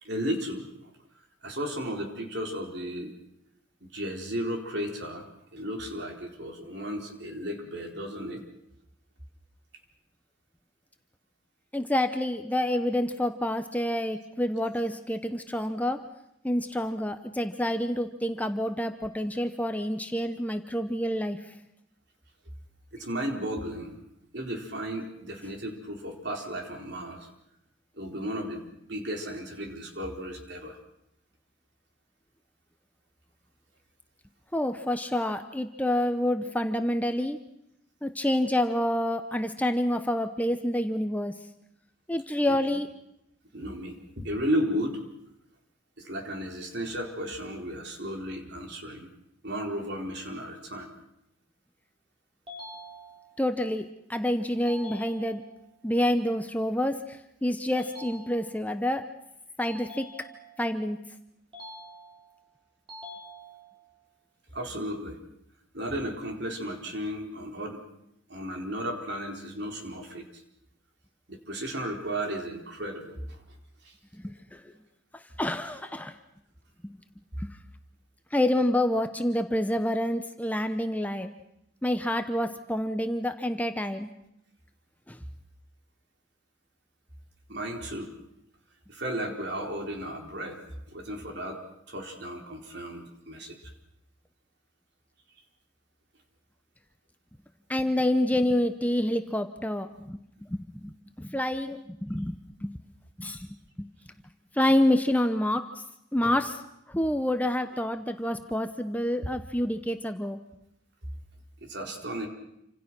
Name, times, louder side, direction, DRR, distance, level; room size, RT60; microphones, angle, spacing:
voice 1, 0.0-0.9 1.4-3.1 3.8-5.3 5.5-8.4 22.9-24.0 24.3-27.3 28.0-30.8 42.5-42.6 43.5-45.0 46.0-49.1 49.4-50.9 64.5-65.2 65.7-67.8 68.3-70.4 71.3-73.4 73.8-73.9 87.5-88.1 88.9-90.6 90.9-93.7 106.2-106.4 111.6-112.3, equal, 55° right, 3 dB, 4.2 m, -34 dB
voice 2, 11.7-16.0 16.4-21.5 34.5-37.4 38.0-41.3 42.1-42.9 53.4-53.8 54.1-55.4 55.8-59.0 59.6-60.1 60.6-61.0 74.1-74.6 75.1-76.1 76.8-77.0 77.4-77.5 78.3-81.3 81.8-84.1 85.1-85.2 97.7-100.2 100.5-102.8 103.2-103.5 103.8-103.9 104.5-105.8 106.1-106.5 106.9-110.4, left 1 dB, 10° left, 7 dB, 0.9 m, -28 dB
sound 1, 52.5-53.5 54.7-55.7 57.7-58.8 59.6-60.7 61.5-62.4 62.9-63.9, equal, 25° right, 6.0 m, -46 dB
28.0 x 26.5 x 6.1 m, 0.82 s
head